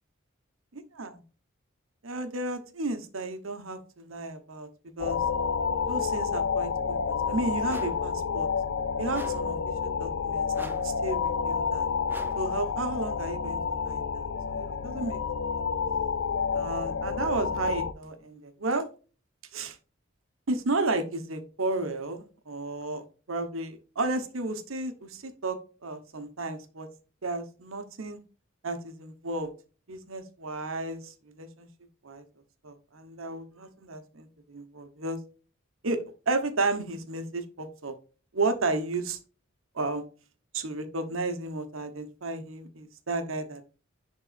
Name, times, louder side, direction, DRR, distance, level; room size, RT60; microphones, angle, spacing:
voice 1, 2.0-4.7 5.0-5.2 5.9-8.5 9.0-11.9 12.3-15.5 16.5-18.9 19.5-19.8 20.5-26.9 27.2-28.2 28.6-29.5 29.9-31.7 32.0-32.2 32.6-35.2 35.8-37.9 38.3-39.2 39.7-40.0 40.5-43.6, right 2 dB, 80° right, 8 dB, 1.1 m, -33 dB
sound 1, 5.0-17.9, left 6 dB, 75° left, 0.5 m, -29 dB
sound 2, 7.7-8.1 9.1-9.6 10.5-11.0 12.1-12.6, right 1 dB, 10° right, 0.5 m, -44 dB
10.5 x 3.9 x 2.5 m, 0.36 s
head